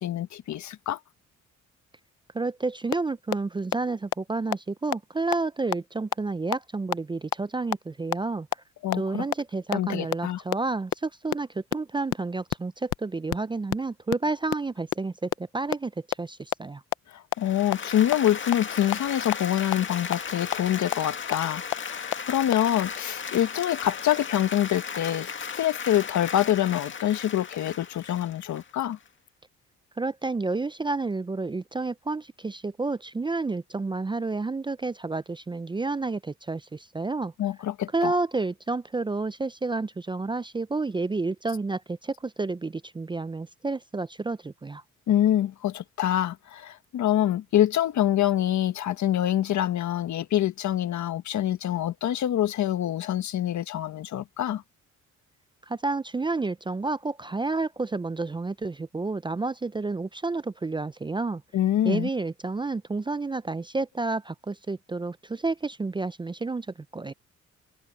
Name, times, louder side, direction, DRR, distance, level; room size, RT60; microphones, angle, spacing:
voice 1, 0.0-1.0 8.8-9.2 9.7-10.4 17.1-29.0 37.4-38.1 45.1-54.6 61.5-62.1, left 12 dB, 70° left, 1.5 m, -26 dB
voice 2, 2.3-8.6 8.9-15.9 16.2-16.8 30.0-37.3 37.9-44.8 55.7-61.4 61.8-66.7 66.9-67.1, right 3 dB, 15° right, 0.5 m, -30 dB
sound 1, 2.9-3.0 3.3-3.4 3.7-3.8 4.1-4.2 4.5-4.6 4.9-5.0 5.3-5.4 5.7-5.8 6.1-6.2 6.5-6.6 6.9-7.0 7.3-7.4 7.7-7.8 8.1-8.2 8.5-8.6 8.9-9.0 9.3-9.4 9.7-9.8 10.1-10.2 10.5-10.6 10.9-11.0 11.3-11.4 11.7-11.8 12.1-12.2 12.5-12.6 12.9-13.0 13.3-13.4 13.7-13.8 14.1-14.2 14.5-14.6 14.9-15.0 15.3-15.4 15.7-15.8 16.1-16.2 16.5-16.6 16.9-17.0 17.3-17.4 17.7-17.8 18.1-18.2 18.5-18.6 18.9-19.0 19.3-19.4 19.7-19.8 20.1-20.2 20.5-20.6 20.9-21.0 21.3-21.4 21.7-21.8 22.1-22.2 22.5-22.6, left 17 dB, 90° left, 0.7 m, -25 dB
Applause, 17.3-29.1, left 6 dB, 40° left, 2.1 m, -36 dB
cardioid pair, 90°, 30 cm